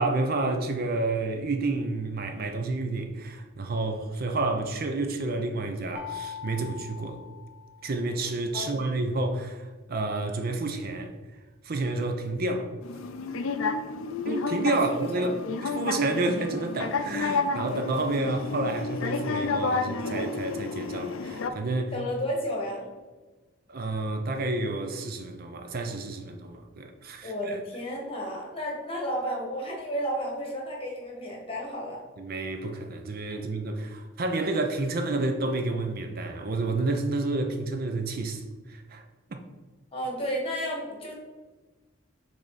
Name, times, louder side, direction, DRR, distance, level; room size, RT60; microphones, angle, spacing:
voice 1, 0.0-7.2 7.8-11.1 11.6-12.7 14.2-21.9 23.7-27.6 32.2-39.0, right 2 dB, 45° right, 0.5 m, -30 dB
sound 1, 5.9-8.1, left 8 dB, 10° right, 1.5 m, -41 dB
sound 2, 12.8-21.5, left 4 dB, 85° left, 0.5 m, -31 dB
voice 2, 21.9-22.9 27.2-32.0 33.3-33.4 39.9-41.1, equal, 25° left, 1.3 m, -32 dB
6.5 x 3.5 x 4.1 m
head